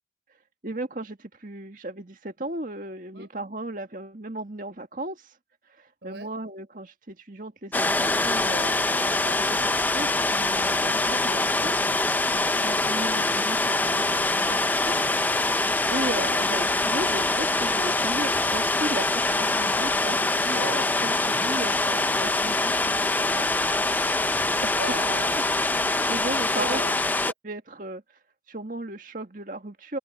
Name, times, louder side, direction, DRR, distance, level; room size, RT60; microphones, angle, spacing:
voice 1, 0.6-5.3 5.7-11.8 12.6-15.2 15.5-22.9 23.2-23.5 26.1-26.8 27.4-28.0 28.5-30.0, right 1 dB, 50° right, 1.9 m, -36 dB
voice 2, 6.0-6.3 12.5-12.7 21.3-22.2 23.6-25.6 26.6-27.1, right 2 dB, 80° right, 4.1 m, -40 dB
sound 1, 7.7-27.3, left 2 dB, 10° left, 0.5 m, -24 dB
head